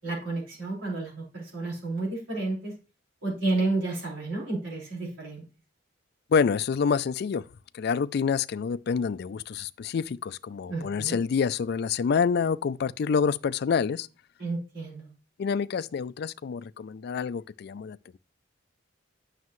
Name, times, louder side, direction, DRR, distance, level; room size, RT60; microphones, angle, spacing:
voice 1, 0.0-2.7 3.2-5.4 10.7-11.2 14.4-15.1, right 2 dB, 90° right, 4.8 m, -31 dB
voice 2, 6.3-7.5 7.7-14.1 15.4-18.0, left 6 dB, 55° left, 0.3 m, -27 dB
9.5 x 6.5 x 3.1 m
head